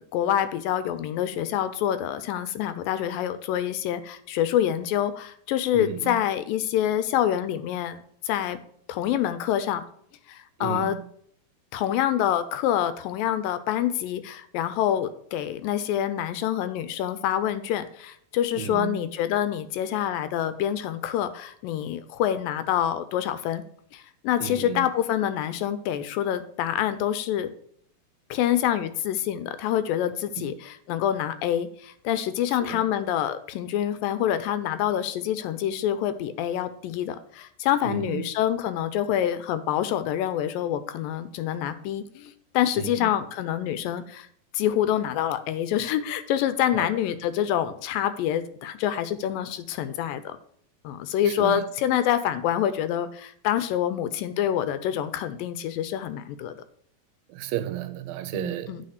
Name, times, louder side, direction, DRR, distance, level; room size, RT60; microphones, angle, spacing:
voice 1, 0.1-8.6 8.9-9.8 10.3-11.0 11.7-23.6 23.9-27.5 28.3-44.3 44.5-50.4 50.8-56.5 58.3-58.8, left 11 dB, 85° left, 2.3 m, -26 dB
voice 2, 5.7-6.2 10.6-11.0 18.6-19.0 24.4-24.9 30.4-30.5 32.6-32.8 37.9-38.2 42.8-43.1 46.7-46.9 51.3-51.6 57.3-58.8, right 13 dB, 85° right, 2.5 m, -33 dB
8.5 x 4.3 x 6.5 m
omnidirectional pair, 4.1 m